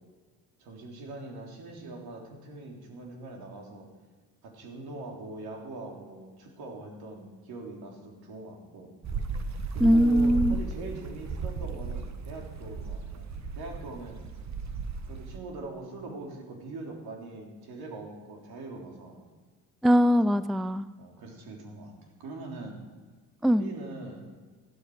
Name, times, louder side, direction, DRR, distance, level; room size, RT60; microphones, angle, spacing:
voice 1, 0.6-3.9 4.4-9.2 9.7-14.2 15.1-19.2 21.0-21.9 22.2-22.8 23.6-24.2, right 2 dB, 65° right, 1 dB, 3.6 m, -42 dB
sound 1, 9.0-15.4, right 5 dB, 45° right, 1.5 m, -35 dB
voice 2, 9.8-10.5 19.8-20.9 23.4-23.7, equal, ahead, 15 dB, 0.4 m, -21 dB
14.5 x 12.5 x 4.9 m, 1.4 s
hypercardioid pair, 60°, 40 cm